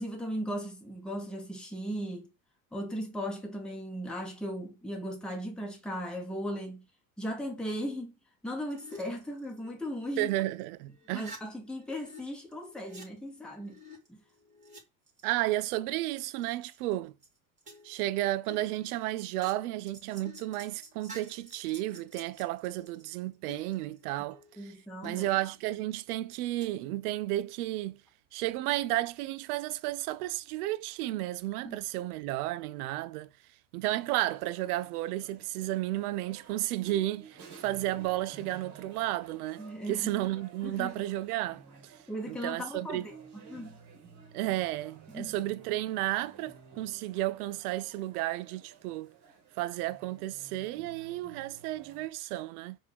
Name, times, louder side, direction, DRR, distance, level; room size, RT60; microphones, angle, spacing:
voice 1, 0.0-2.3 2.7-6.8 7.2-8.1 8.4-10.3 11.1-13.8 14.1-14.2 24.6-25.2 31.6-31.8 39.6-40.1 40.6-40.9 42.1-43.1 43.5-43.8 45.1-45.3, equal, ahead, 1.3 m, -37 dB
sound 1, 8.7-10.6 10.9-12.2 12.5-14.8 15.1-15.7 16.1-16.9 17.2-17.3 17.6-18.1 18.5-23.0 23.5-24.6 25.0-25.9 26.6-26.9, equal, 15° right, 2.3 m, -52 dB
voice 2, 10.2-11.3 15.2-17.2 17.8-24.7 25.0-28.0 28.3-33.3 33.7-42.0 42.3-43.1 44.3-49.1 49.6-52.8, right 16 dB, 80° right, 0.5 m, -33 dB
sound 2, 33.8-52.1, right 6 dB, 40° right, 1.5 m, -54 dB
4.5 x 2.7 x 3.4 m
hypercardioid pair, 80°, 45 cm